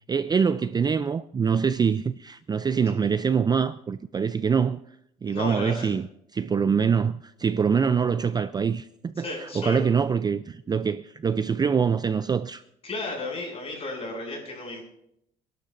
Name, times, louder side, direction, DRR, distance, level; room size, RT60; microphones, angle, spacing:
voice 1, 0.1-4.8 5.2-6.0 6.3-12.6, right 6 dB, 25° right, 0.4 m, -24 dB
voice 2, 5.2-5.9 9.2-9.8 12.8-14.9, left 2 dB, 35° left, 6.9 m, -34 dB
28.5 x 12.0 x 2.6 m
cardioid pair, 110°, 17 cm